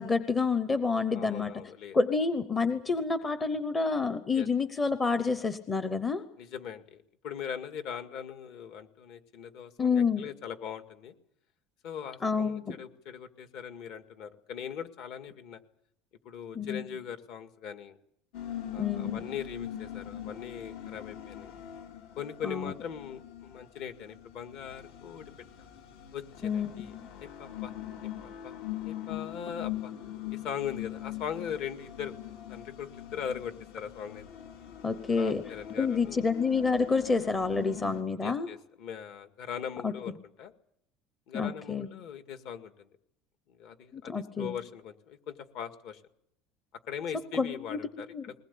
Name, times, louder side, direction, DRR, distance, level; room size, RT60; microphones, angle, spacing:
voice 1, 0.0-1.5 1.9-6.2 9.8-10.3 12.2-12.8 16.5-16.8 18.8-19.3 22.4-22.7 26.4-27.1 34.8-35.4 35.8-38.5 39.8-39.9 41.3-41.9 43.9-44.6 47.4-47.8 48.1-48.2, left 4 dB, 15° left, 10 dB, 0.8 m, -28 dB
voice 2, 1.1-2.0 4.3-4.5 6.4-11.1 11.8-15.6 16.3-18.0 18.7-21.5 22.2-25.2 26.1-26.9 27.2-27.7 28.0-28.5 28.9-29.9 30.3-32.1 32.5-34.2 35.2-36.3 38.2-40.5 41.3-42.9 43.5-46.0 46.9-48.1, left 8 dB, 50° left, 8 dB, 2.0 m, -40 dB
sound 1, 18.3-38.0, left 11 dB, 65° left, 3.2 m, -42 dB
21.0 x 19.5 x 8.5 m, 0.71 s
cardioid pair, 180°, 0 cm